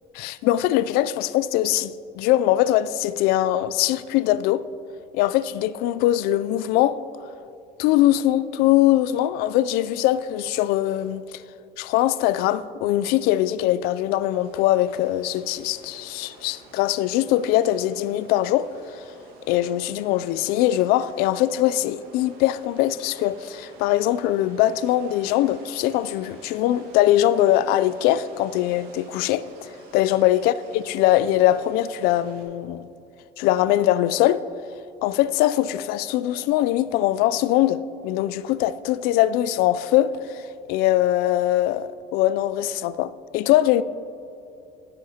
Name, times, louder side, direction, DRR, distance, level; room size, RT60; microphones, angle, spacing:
voice 1, 0.2-4.7 5.1-7.0 7.8-11.2 11.8-19.0 19.5-32.9 33.4-34.4 35.0-43.8, left 13 dB, 75° left, 0.4 m, -22 dB
sound 1, 14.3-32.4, right 2 dB, 70° right, 1.7 m, -49 dB
18.0 x 7.5 x 2.9 m
cardioid pair, 135°, 16 cm